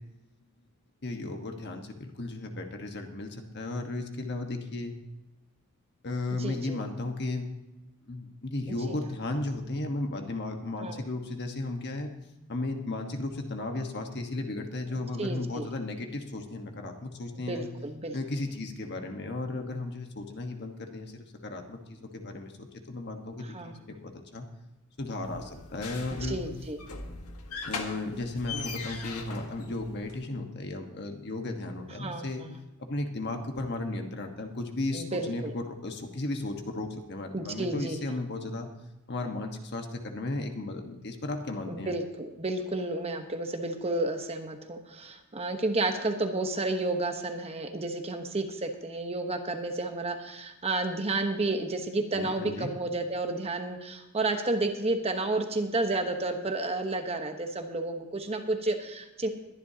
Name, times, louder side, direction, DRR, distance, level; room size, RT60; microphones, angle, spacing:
voice 1, 1.0-5.0 6.0-7.5 8.0-12.1 12.5-17.7 18.1-24.5 25.0-26.4 27.7-32.4 32.8-38.7 39.1-41.9 52.1-52.7, left 2 dB, 50° left, 4 dB, 1.4 m, -35 dB
voice 2, 6.4-6.8 8.7-9.0 10.8-11.0 14.9-15.7 17.4-18.1 23.4-23.8 26.3-26.8 32.0-32.6 34.9-35.5 37.3-38.0 41.7-59.3, right 2 dB, 30° right, 5 dB, 1.1 m, -31 dB
sound 1, 25.2-30.3, left 4 dB, 80° left, 1.6 m, -40 dB
22.0 x 10.5 x 2.9 m, 0.97 s
head